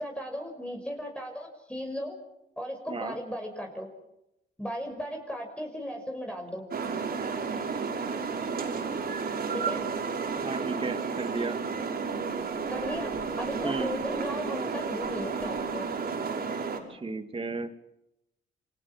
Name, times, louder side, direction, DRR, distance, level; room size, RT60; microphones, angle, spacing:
voice 1, 0.0-2.2 2.6-3.9 4.6-6.6 9.6-9.8 12.7-15.9, equal, 5° left, 2 dB, 6.1 m, -36 dB
sound 1, 6.7-16.8, right 5 dB, 50° right, 6.1 m, -32 dB
voice 2, 10.4-11.6 13.6-13.9 16.9-17.7, right 3 dB, 25° right, 7 dB, 2.6 m, -34 dB
29.5 x 24.5 x 6.0 m, 0.87 s
cardioid pair, 90°, 20 cm